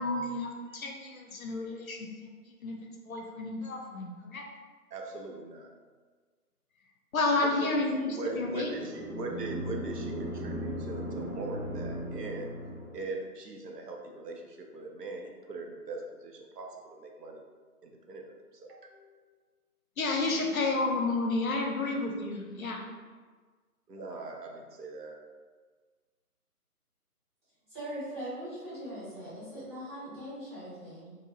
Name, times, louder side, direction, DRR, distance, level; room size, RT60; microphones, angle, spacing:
voice 1, 0.0-2.8 3.1-4.4 7.1-8.7 20.0-22.8, left 3 dB, 65° left, 1 dB, 0.5 m, -31 dB
voice 2, 4.9-5.7 7.3-12.5 12.9-17.4 17.8-19.3 23.9-25.2, right 3 dB, 90° right, 2 dB, 0.6 m, -41 dB
sound 1, 8.2-13.2, equal, 50° right, 0.9 m, -37 dB
voice 3, 27.7-31.2, equal, 20° right, -13 dB, 0.8 m, -40 dB
2.6 x 2.1 x 2.6 m, 1.5 s
figure-of-eight pair, 155°, 46 cm